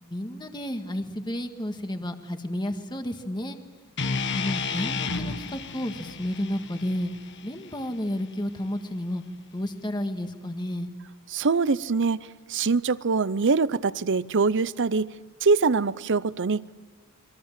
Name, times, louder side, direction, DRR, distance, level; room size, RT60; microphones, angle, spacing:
voice 1, 0.0-3.6 4.3-7.1 7.4-9.2 9.5-10.9, left 1 dB, 20° left, 6 dB, 1.7 m, -31 dB
sound 1, 4.0-8.2, left 4 dB, 55° left, 1.3 m, -32 dB
voice 2, 11.3-12.2 12.5-15.1 15.4-16.9, right 4 dB, 55° right, 17 dB, 0.7 m, -23 dB
29.5 x 23.0 x 7.5 m, 1.4 s
head